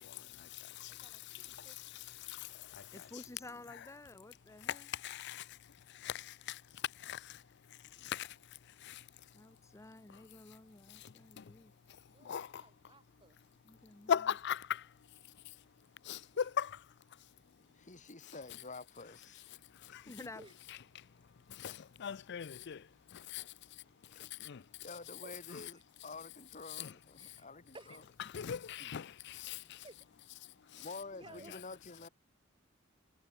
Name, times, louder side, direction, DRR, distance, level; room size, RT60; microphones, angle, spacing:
voice 1, 0.9-1.8 12.1-13.4 16.3-16.5 20.4-20.5 25.2-25.4 25.7-25.8 27.2-27.5 27.7-28.1 29.8-30.0 30.7-31.6, right 2 dB, 25° right, 5.6 m, -57 dB
voice 2, 2.9-4.9 9.3-11.7 13.6-14.3 20.0-20.4, left 2 dB, 15° left, 0.7 m, -52 dB
voice 3, 5.0-5.4 6.0-6.6 7.0-7.2 8.0-8.3 8.8-9.0 11.4-11.5 12.3-12.5 14.1-14.8 16.1-16.7 19.9-20.0 21.6-22.8 23.3-23.4 24.4-24.6 26.8-26.9 28.3-29.6, left 8 dB, 55° left, 0.5 m, -37 dB
voice 4, 17.7-19.4 24.1-24.3 24.8-27.8 28.8-28.9 30.8-32.1, left 3 dB, 40° left, 2.3 m, -49 dB
head